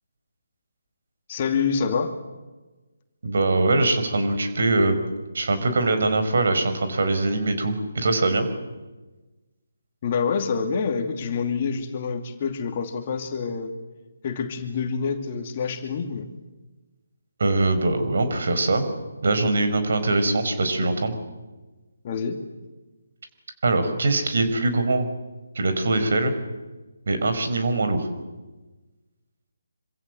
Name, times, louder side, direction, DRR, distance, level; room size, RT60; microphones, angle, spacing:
voice 1, 1.3-2.1 10.0-13.7 14.2-16.3 22.0-22.4, left 5 dB, 30° left, 5 dB, 2.6 m, -27 dB
voice 2, 3.2-5.0 5.3-8.4 17.4-18.8 19.2-21.1 23.6-25.1 25.5-26.3 27.1-28.1, right 2 dB, 50° right, 8 dB, 5.1 m, -22 dB
26.5 x 26.0 x 7.9 m, 1.2 s
figure-of-eight pair, 145°, 0 cm